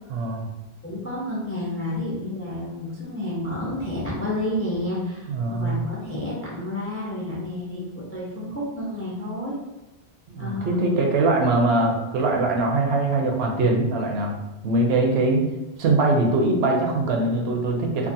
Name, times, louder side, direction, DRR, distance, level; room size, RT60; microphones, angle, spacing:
voice 1, 0.1-0.5 5.3-5.8 10.3-14.3 14.6-15.4 15.8-18.1, right 2 dB, 75° right, 1 dB, 0.8 m, -22 dB
voice 2, 0.8-7.8 8.1-9.5 10.4-10.8 18.0-18.1, left 1 dB, 20° left, -5 dB, 0.3 m, -30 dB
2.6 x 2.4 x 2.5 m, 1.1 s
omnidirectional pair, 1.1 m